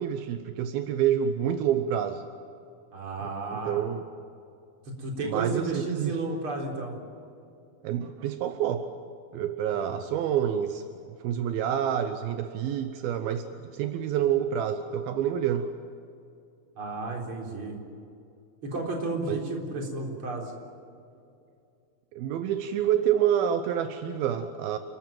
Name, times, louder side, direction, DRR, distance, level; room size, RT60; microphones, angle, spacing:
voice 1, 0.0-2.2 3.5-4.0 5.2-6.2 7.8-8.9 9.3-15.7 19.3-19.4 22.1-24.8, right 9 dB, 80° right, 8 dB, 2.7 m, -28 dB
voice 2, 2.9-3.8 4.9-7.0 9.7-10.0 16.8-17.8 18.6-20.5, right 2 dB, 35° right, 1 dB, 4.3 m, -32 dB
29.5 x 14.5 x 9.1 m, 2.6 s
omnidirectional pair, 4.4 m